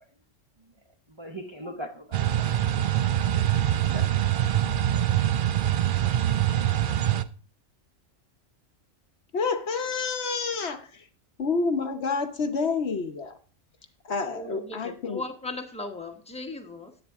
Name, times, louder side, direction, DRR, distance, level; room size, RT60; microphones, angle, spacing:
voice 1, 1.1-2.5 2.7-3.0 3.3-4.5, right 1 dB, 25° right, 3 dB, 0.8 m, -42 dB
sound 1, 2.1-7.2, right 11 dB, 55° right, 0.6 m, -24 dB
voice 2, 9.3-11.1 11.4-13.4 14.0-15.2, left 4 dB, 60° left, 7 dB, 1.1 m, -28 dB
voice 3, 14.1-17.0, left 2 dB, 5° left, 4 dB, 1.0 m, -38 dB
10.5 x 8.8 x 3.5 m, 0.39 s
omnidirectional pair, 1.3 m